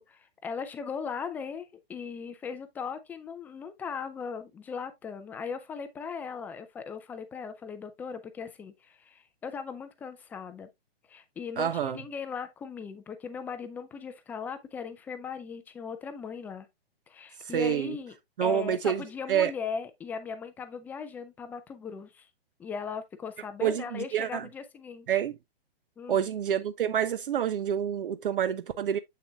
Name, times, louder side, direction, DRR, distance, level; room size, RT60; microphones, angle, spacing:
voice 1, 0.0-10.7 11.1-16.7 17.1-22.3 22.6-25.2 26.0-26.3, left 6 dB, 5° left, 0.4 m, -38 dB
voice 2, 11.6-12.0 17.4-18.0 18.4-19.0 19.3-19.5 23.6-24.5 25.1-25.4 26.1-29.0, right 9 dB, 60° right, 0.6 m, -28 dB
7.5 x 6.7 x 2.3 m
figure-of-eight pair, 120°, 31 cm